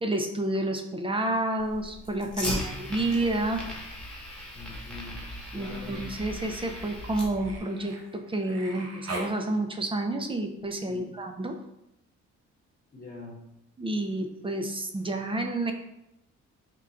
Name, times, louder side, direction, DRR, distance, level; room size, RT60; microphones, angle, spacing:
voice 1, 0.0-3.6 5.5-11.6 13.8-15.7, right 1 dB, 20° right, 5 dB, 0.5 m, -30 dB
Fire, 1.6-7.6, left 1 dB, ahead, 1.3 m, -38 dB
voice 2, 2.4-3.1 4.5-5.9 10.9-11.1 12.9-13.4, left 2 dB, 30° left, -3 dB, 1.1 m, -45 dB
Human voice, 2.7-3.4 3.8-9.4 11.0-11.1, right 2 dB, 55° right, 1.0 m, -44 dB
3.7 x 2.5 x 4.3 m, 0.84 s
cardioid pair, 90°, 30 cm